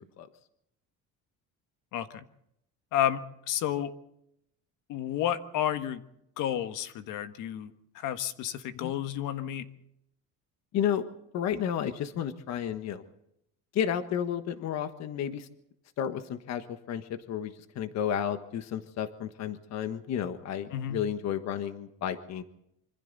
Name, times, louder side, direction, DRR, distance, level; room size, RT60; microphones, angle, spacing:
voice 1, 1.9-2.2 2.9-3.9 4.9-6.0 6.4-9.6 20.7-21.0, left 11 dB, 75° left, 9 dB, 1.5 m, -31 dB
voice 2, 10.7-11.0 11.3-13.0 13.7-15.5 16.0-22.4, left 9 dB, 55° left, 9 dB, 1.4 m, -32 dB
26.5 x 25.5 x 4.1 m, 0.78 s
cardioid pair, 150°, 32 cm